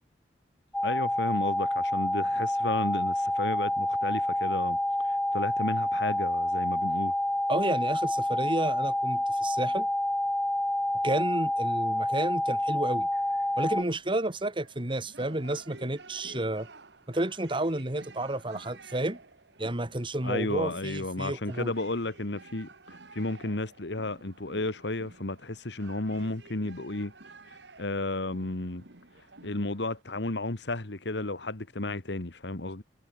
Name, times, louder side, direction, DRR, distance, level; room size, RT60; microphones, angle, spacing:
sound 1, 0.7-13.8, left 1 dB, 5° left, 0.4 m, -28 dB
voice 1, 0.8-4.8 5.0-7.1 20.2-27.1 27.5-28.8 29.4-32.8, left 2 dB, 85° left, 1.8 m, -33 dB
voice 2, 7.5-9.9 11.0-13.1 13.6-16.7 17.1-19.2 19.6-21.7, right 1 dB, 30° right, 2.0 m, -31 dB
sound 2, 13.1-30.0, right 3 dB, 85° right, 2.4 m, -52 dB
head